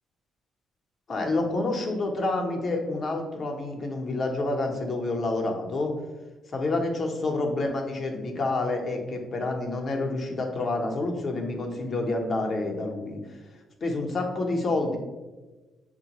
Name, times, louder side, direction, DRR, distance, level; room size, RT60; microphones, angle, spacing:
voice 1, 1.1-5.9 6.5-13.2 13.8-15.0, left 2 dB, 45° left, 3 dB, 0.7 m, -28 dB
5.9 x 2.2 x 2.9 m, 1.2 s
cardioid pair, 90°, 0 cm